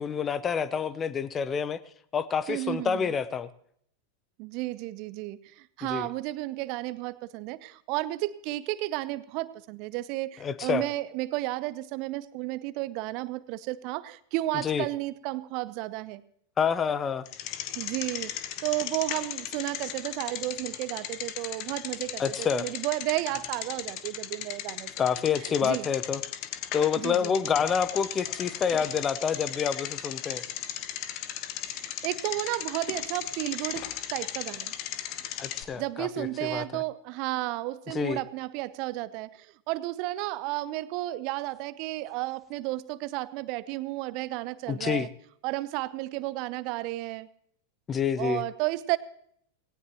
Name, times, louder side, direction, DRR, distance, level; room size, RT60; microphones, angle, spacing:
voice 1, 0.0-1.8 2.1-3.5 5.9-6.1 10.4-10.8 14.6-14.9 16.6-17.2 22.2-22.6 25.0-26.2 26.7-30.4 35.4-36.8 37.9-38.2 44.7-45.1 47.9-48.4, left 7 dB, 20° left, 16 dB, 0.8 m, -28 dB
voice 2, 2.5-3.1 4.4-16.2 17.7-18.3 18.6-24.9 25.4-25.9 27.0-27.3 31.7-34.7 35.7-45.1 45.4-47.3 48.2-49.0, right 18 dB, 45° right, 18 dB, 0.7 m, -33 dB
Bicycle, 17.3-35.6, left 12 dB, 40° left, 1.3 m, -37 dB
18.5 x 18.0 x 3.0 m, 0.66 s
figure-of-eight pair, 90°, 0 cm